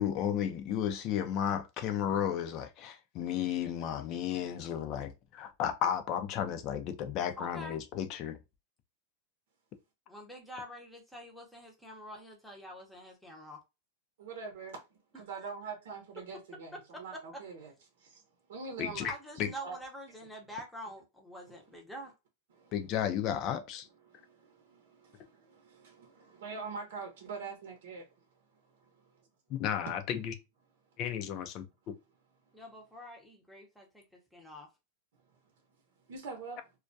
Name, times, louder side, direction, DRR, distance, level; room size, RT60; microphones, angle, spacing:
voice 1, 0.0-5.1 5.4-8.4 18.8-19.1 19.4-19.5 22.7-23.9 29.6-30.3 31.0-31.6, left 9 dB, 40° left, 0.5 m, -33 dB
voice 2, 7.4-7.8 10.1-13.6 15.3-15.5 19.1-22.1 32.5-34.7, equal, ahead, 0.7 m, -46 dB
voice 3, 14.2-14.8 15.1-17.7 18.5-19.1 19.6-19.8 25.7-28.0 36.1-36.6, right 4 dB, 75° right, 0.7 m, -42 dB
2.3 x 2.2 x 2.6 m
supercardioid pair, 140°, 0 cm